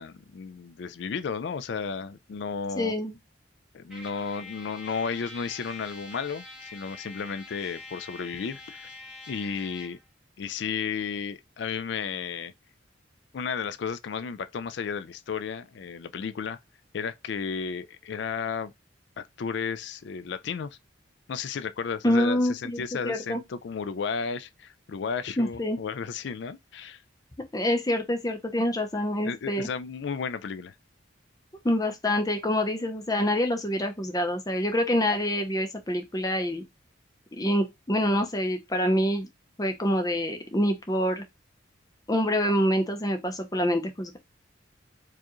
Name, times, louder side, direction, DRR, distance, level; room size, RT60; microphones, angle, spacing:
voice 1, 0.0-2.9 3.7-8.9 9.3-10.0 10.4-12.5 13.3-16.6 16.9-18.7 19.2-20.8 21.3-27.0 29.2-30.7, left 6 dB, 60° left, 0.4 m, -33 dB
voice 2, 2.8-3.2 22.0-23.4 25.4-25.8 27.5-29.7 31.6-36.6 37.3-39.3 39.6-41.2 42.1-44.2, equal, 20° left, 0.6 m, -26 dB
Trumpet, 3.9-10.0, left 3 dB, 5° right, 1.0 m, -45 dB
4.7 x 2.4 x 3.0 m
head